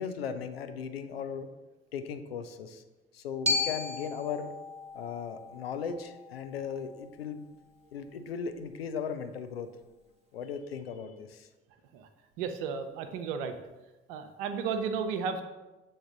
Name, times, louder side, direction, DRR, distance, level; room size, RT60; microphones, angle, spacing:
voice 1, 0.0-1.5 1.9-2.8 3.1-4.6 4.9-7.5 7.9-9.7 10.3-11.5, left 6 dB, 85° left, 8 dB, 0.5 m, -37 dB
Glockenspiel, 3.5-7.6, left 3 dB, 20° right, 0.8 m, -36 dB
voice 2, 12.4-13.6 14.1-15.4, right 6 dB, 70° right, 7 dB, 0.6 m, -33 dB
7.1 x 3.8 x 3.8 m, 1.1 s
figure-of-eight pair, 50°, 29 cm